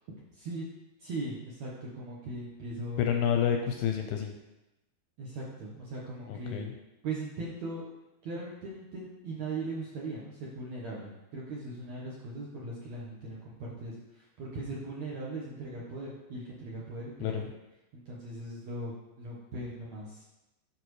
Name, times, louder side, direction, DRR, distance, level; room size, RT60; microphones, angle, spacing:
voice 1, 0.3-0.6 1.0-3.0 5.2-6.7 7.0-7.8 8.2-17.4 17.9-20.3, right 2 dB, 65° right, -5 dB, 1.8 m, -39 dB
voice 2, 3.0-4.3 6.3-6.7 17.2-17.4, left 8 dB, 80° left, 4 dB, 2.2 m, -29 dB
12.0 x 5.8 x 3.2 m, 0.97 s
omnidirectional pair, 4.7 m